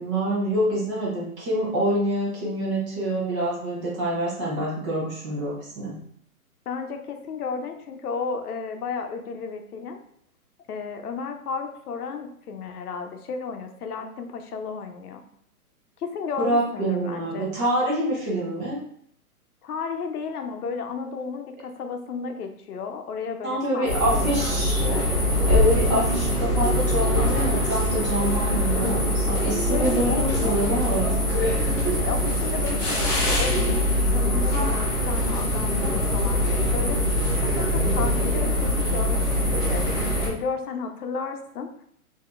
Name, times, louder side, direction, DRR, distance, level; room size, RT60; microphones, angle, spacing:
voice 1, 0.0-6.0 16.4-18.8 23.4-24.9 25.2-31.2, right 1 dB, 20° right, -4 dB, 0.7 m, -26 dB
voice 2, 6.7-10.0 10.7-15.2 16.0-17.5 19.6-24.3 29.7-30.5 32.0-37.0 37.4-39.8 40.3-41.7, left 5 dB, 80° left, 6 dB, 0.7 m, -33 dB
sound 1, 23.9-40.3, left 1 dB, 15° left, 0.5 m, -23 dB
4.8 x 2.8 x 2.3 m, 0.66 s
hypercardioid pair, 150°, 45 cm